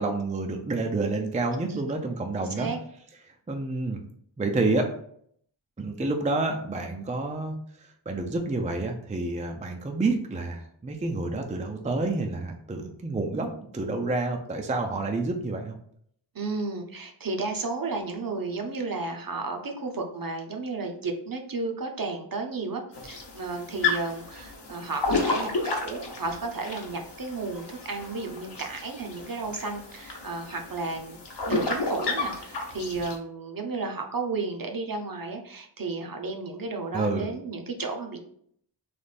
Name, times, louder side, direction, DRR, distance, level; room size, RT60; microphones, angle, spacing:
voice 1, 0.0-2.7 3.5-4.0 4.4-4.9 5.8-15.8 36.9-37.3, right 2 dB, 15° right, 3 dB, 0.4 m, -29 dB
voice 2, 2.4-2.8 16.3-31.2 31.5-38.2, right 3 dB, 45° right, 3 dB, 0.7 m, -33 dB
sound 1, 22.9-33.2, left 3 dB, 55° left, 0.9 m, -32 dB
3.4 x 3.1 x 4.1 m, 0.66 s
wide cardioid pair, 80°, 47 cm